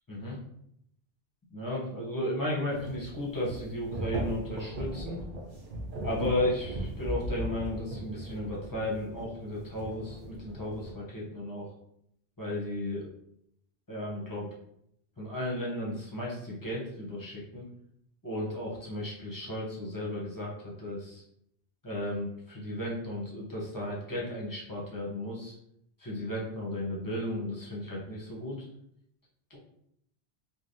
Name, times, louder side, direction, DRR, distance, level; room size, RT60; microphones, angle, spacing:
voice 1, 1.5-5.2 6.0-11.6 12.4-13.1 13.9-14.5 15.2-17.6 18.2-21.2 21.8-25.5 26.0-28.6 29.5-29.6, left 1 dB, 20° left, -5 dB, 0.6 m, -34 dB
sound 1, 2.7-10.9, right 1 dB, 55° right, 0.7 m, -38 dB
3.3 x 2.3 x 2.6 m, 0.74 s
omnidirectional pair, 1.1 m